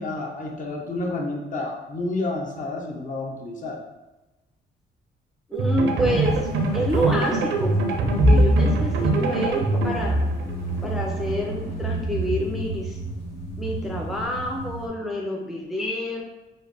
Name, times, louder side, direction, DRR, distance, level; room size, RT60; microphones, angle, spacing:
voice 1, 0.0-3.8, left 2 dB, 40° left, 0 dB, 0.8 m, -30 dB
voice 2, 5.5-6.5 6.7-10.2 10.8-13.0 13.6-16.2, equal, ahead, -1 dB, 0.5 m, -28 dB
sound 1, 5.5-11.3, right 2 dB, 75° right, 0.6 m, -25 dB
sound 2, 6.1-14.9, equal, 90° left, 1.3 m, -26 dB
3.2 x 2.2 x 4.0 m, 1.0 s
cardioid pair, 90°, 20 cm